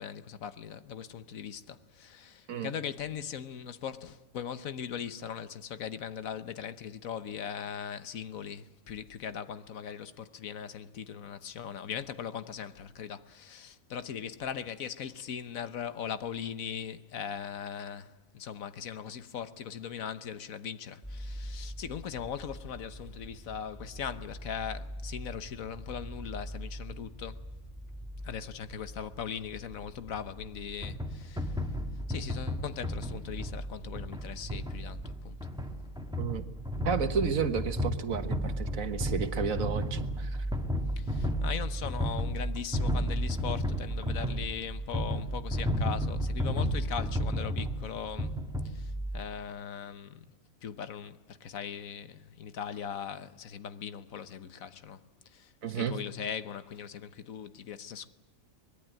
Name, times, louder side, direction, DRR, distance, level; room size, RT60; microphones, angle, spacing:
voice 1, 0.0-27.5 28.2-31.6 32.1-35.4 41.0-48.4 48.6-50.3 50.6-58.1, left 8 dB, 90° left, 1.4 m, -40 dB
sound 1, 21.0-34.8, equal, 15° left, 5.2 m, -44 dB
sound 2, 30.8-49.2, equal, 5° right, 1.7 m, -33 dB
voice 2, 36.9-40.4 55.6-55.9, right 6 dB, 80° right, 1.7 m, -32 dB
24.0 x 20.0 x 9.0 m
omnidirectional pair, 1.4 m